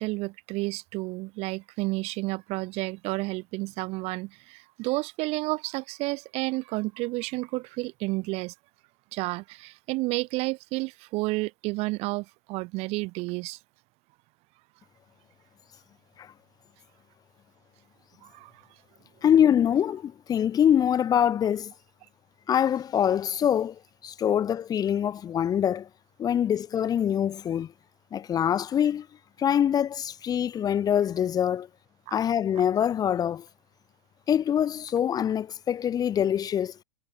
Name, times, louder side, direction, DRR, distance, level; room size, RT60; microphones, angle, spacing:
voice 1, 0.0-8.5 9.1-13.6 18.2-18.5, right 23 dB, 40° right, 1.5 m, -31 dB
voice 2, 19.2-21.7 22.5-25.9 26.2-27.7 28.1-29.1 29.4-31.7 32.1-33.4 34.3-36.7, left 9 dB, 25° left, 1.4 m, -24 dB
hypercardioid pair, 105°, 16 cm